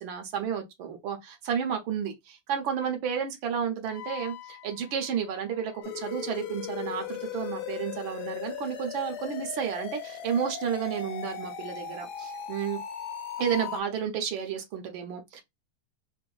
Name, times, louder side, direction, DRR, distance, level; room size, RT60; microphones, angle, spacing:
voice 1, 0.0-12.8 13.4-15.4, right 8 dB, 75° right, 1.5 m, -32 dB
Wind instrument woodwind instrument, 3.9-8.5, left 12 dB, 85° left, 1.5 m, -48 dB
sound 1, 5.8-13.8, left 8 dB, 70° left, 1.0 m, -37 dB
3.8 x 2.6 x 2.3 m
omnidirectional pair, 2.3 m